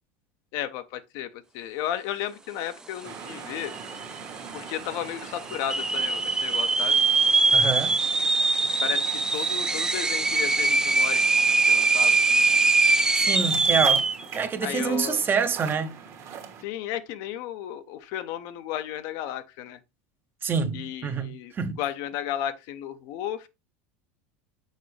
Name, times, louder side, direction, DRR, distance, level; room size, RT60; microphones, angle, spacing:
voice 1, 0.5-3.7 4.5-7.0 8.8-12.2 14.6-15.3 16.6-19.8 20.7-23.5, left 11 dB, 65° left, 0.8 m, -34 dB
sound 1, 3.0-16.6, right 7 dB, 45° right, 1.5 m, -42 dB
sound 2, 3.3-3.4 3.6-4.2 4.7-4.8 5.5-14.2, right 3 dB, 10° right, 0.5 m, -22 dB
voice 2, 7.5-8.0 13.1-14.0 14.3-16.0 20.4-21.8, right 6 dB, 30° right, 0.8 m, -27 dB
6.5 x 4.6 x 3.2 m
supercardioid pair, 110°, 7 cm